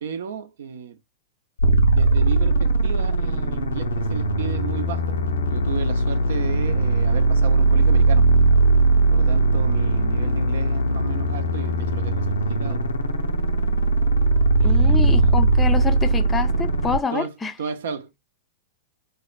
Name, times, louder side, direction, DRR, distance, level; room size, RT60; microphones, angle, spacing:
voice 1, 0.0-1.0 1.9-5.2 5.5-8.3 9.1-12.8 14.6-15.4 17.1-17.3 17.6-18.1, right 7 dB, 70° right, 0.6 m, -33 dB
sound 1, 1.6-17.0, right 2 dB, 85° left, 0.7 m, -19 dB
voice 2, 14.6-17.5, left 5 dB, 15° left, 0.5 m, -27 dB
4.8 x 2.1 x 2.4 m
hypercardioid pair, 105°, 0 cm